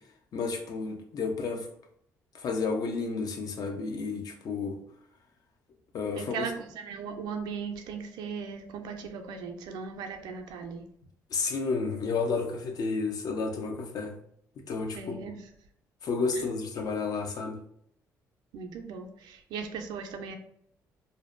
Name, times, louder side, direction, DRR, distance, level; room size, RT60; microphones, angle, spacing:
voice 1, 0.3-1.7 2.3-4.8 5.9-6.5 11.3-14.2 14.6-15.2 16.0-17.6, left 4 dB, 60° left, 4 dB, 0.5 m, -31 dB
voice 2, 6.1-10.8 14.9-15.5 16.3-16.4 18.5-20.4, right 5 dB, 80° right, 4 dB, 0.4 m, -38 dB
2.6 x 2.1 x 2.4 m, 0.69 s
supercardioid pair, 75°, 7 cm